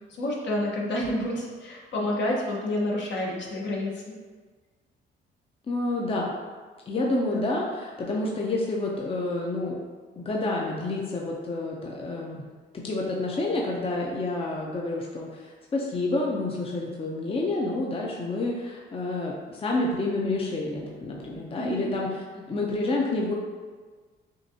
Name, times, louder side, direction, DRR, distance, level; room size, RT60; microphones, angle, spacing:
voice 1, 0.2-4.1 7.3-7.5 21.5-21.8, left 1 dB, 65° left, -3 dB, 1.1 m, -29 dB
voice 2, 5.7-6.3 6.9-9.8 10.2-12.4 12.7-23.3, left 2 dB, 30° left, -2 dB, 0.6 m, -29 dB
6.3 x 2.5 x 2.8 m, 1.4 s
cardioid pair, 90°, 20 cm